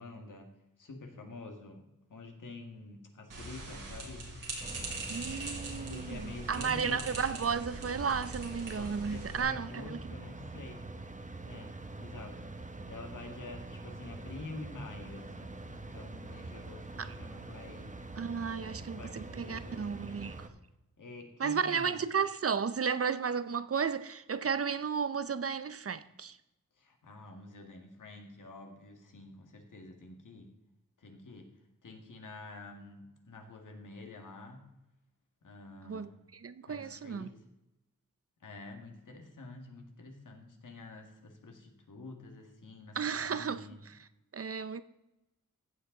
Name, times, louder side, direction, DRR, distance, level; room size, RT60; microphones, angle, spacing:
voice 1, 0.0-4.3 5.8-7.1 8.8-10.8 11.4-12.5 12.9-17.9 18.8-20.2 21.0-22.0 26.8-30.6 31.0-31.5 31.8-34.6 35.4-36.2 36.6-37.4 38.4-43.8, left 3 dB, 75° left, 1.9 m, -48 dB
sound 1, 3.3-9.4, right 2 dB, 90° right, 3.3 m, -42 dB
sound 2, 4.6-20.5, right 2 dB, 25° right, 0.9 m, -45 dB
voice 2, 5.1-10.0 17.0-17.1 18.2-20.4 21.4-26.4 35.8-37.3 43.0-43.6 44.3-44.8, right 6 dB, 45° right, 0.6 m, -33 dB
15.0 x 7.8 x 3.8 m
wide cardioid pair, 85°, 32 cm